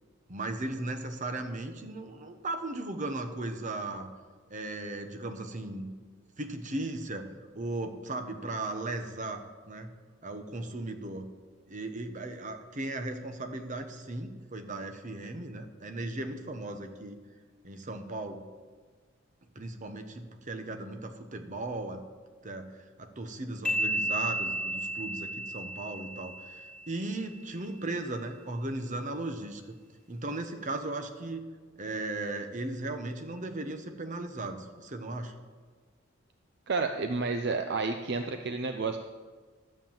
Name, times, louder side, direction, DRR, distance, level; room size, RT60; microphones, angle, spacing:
voice 1, 0.3-4.1 4.5-5.9 6.4-7.3 7.5-9.9 10.2-11.3 11.7-17.2 17.6-18.4 19.5-22.0 22.4-29.8 30.1-31.4 31.8-35.3, right 2 dB, 40° right, 7 dB, 1.0 m, -37 dB
sound 1, 23.6-27.2, right 1 dB, 5° left, 2.2 m, -33 dB
voice 2, 36.7-39.0, right 4 dB, 55° right, 6 dB, 0.6 m, -30 dB
11.5 x 7.4 x 7.4 m, 1.5 s
head